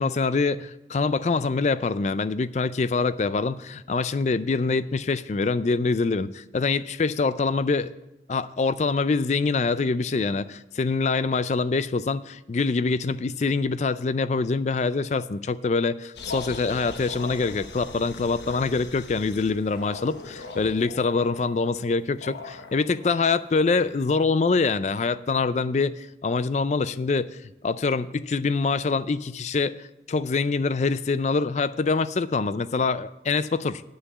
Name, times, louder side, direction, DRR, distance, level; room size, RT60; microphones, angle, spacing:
voice 1, 0.0-7.9 8.3-27.4 27.6-33.8, left 4 dB, 40° left, 15 dB, 0.4 m, -25 dB
sound 1, 16.2-24.1, left 3 dB, 80° left, 1.1 m, -40 dB
9.8 x 5.6 x 8.4 m, 0.90 s
head